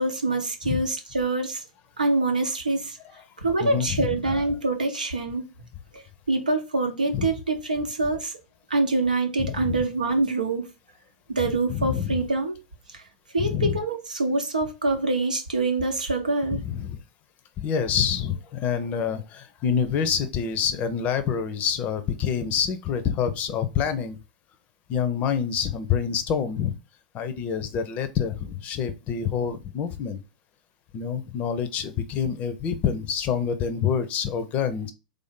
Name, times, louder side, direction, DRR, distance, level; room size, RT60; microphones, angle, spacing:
voice 1, 0.0-1.6 2.0-3.0 3.4-5.4 5.9-6.0 6.3-8.3 8.7-10.6 11.3-12.5 12.9-13.0 13.3-16.6, right 2 dB, 85° right, 0.8 m, -25 dB
voice 2, 3.6-4.4 7.1-7.3 9.5-9.8 11.7-12.1 13.4-13.8 16.5-17.0 17.6-24.2 24.9-26.7 27.1-30.2 30.9-34.9, left 7 dB, 35° left, 0.5 m, -27 dB
3.4 x 2.6 x 3.6 m
figure-of-eight pair, 95°, 4 cm